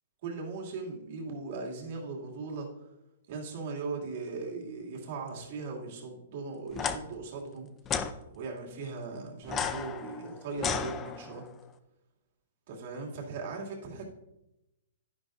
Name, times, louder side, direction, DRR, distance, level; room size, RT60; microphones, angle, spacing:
voice 1, 0.2-2.7 3.3-7.7 8.3-11.4 12.7-14.1, right 4 dB, 45° right, -1 dB, 2.4 m, -38 dB
sound 1, 6.7-7.0 7.9-8.1 9.4-11.5, left 7 dB, 15° left, 0.4 m, -33 dB
11.0 x 10.5 x 2.6 m, 0.92 s
hypercardioid pair, 165°, 0 cm